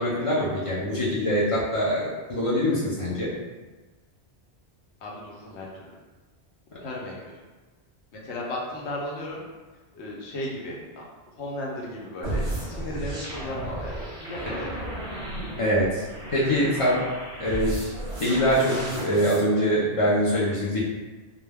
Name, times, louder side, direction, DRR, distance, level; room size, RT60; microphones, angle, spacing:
voice 1, 0.0-3.3 15.6-16.0 16.3-17.1 17.4-20.8, equal, 50° left, -7 dB, 0.4 m, -24 dB
voice 2, 5.0-6.0 6.8-7.3 8.1-9.4 9.9-11.1 11.4-14.8, left 1 dB, 85° left, -3 dB, 0.9 m, -35 dB
sound 1, 12.2-19.4, right 1 dB, 35° right, 0.6 m, -34 dB
2.2 x 2.2 x 3.3 m, 1.3 s
omnidirectional pair, 1.1 m